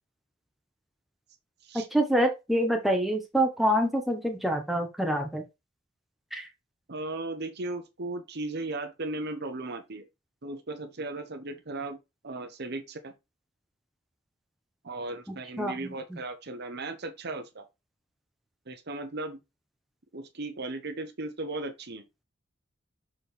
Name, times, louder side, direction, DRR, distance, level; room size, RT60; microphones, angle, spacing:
voice 1, 1.7-5.4 6.3-6.5 15.6-15.9, equal, ahead, 1.2 m, -26 dB
voice 2, 6.9-10.0 10.4-12.0 12.2-13.1 14.8-17.7 18.7-19.4 20.1-22.0, right 2 dB, 60° right, 1.0 m, -36 dB
6.3 x 4.5 x 3.4 m
head